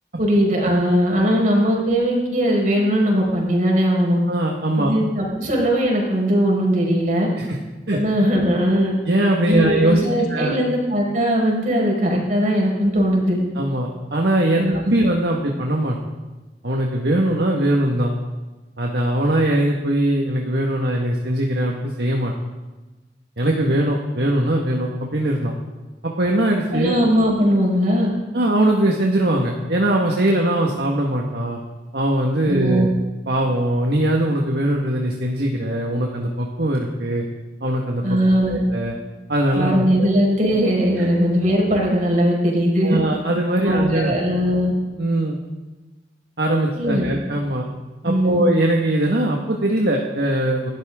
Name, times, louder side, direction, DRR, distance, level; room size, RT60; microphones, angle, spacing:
voice 1, 0.2-4.2 4.8-7.3 7.9-8.9 9.4-13.4 14.6-14.8 26.7-28.1 32.5-32.9 38.0-38.6 39.5-43.0 43.6-44.7 46.7-47.1 48.0-48.4, equal, 45° right, -2 dB, 5.1 m, -19 dB
voice 2, 4.3-4.9 7.4-7.6 7.9-8.0 9.1-10.0 10.3-10.6 13.6-16.0 16.6-18.1 18.8-22.3 23.4-25.5 26.0-27.0 28.3-31.6 31.9-32.9 33.3-37.2 37.6-38.2 38.5-38.9 39.3-40.1 41.0-41.1 42.8-44.1 45.0-45.4 46.4-47.7 48.0-50.7, right 1 dB, 65° right, 0 dB, 1.7 m, -21 dB
29.0 x 13.0 x 3.7 m, 1.2 s
head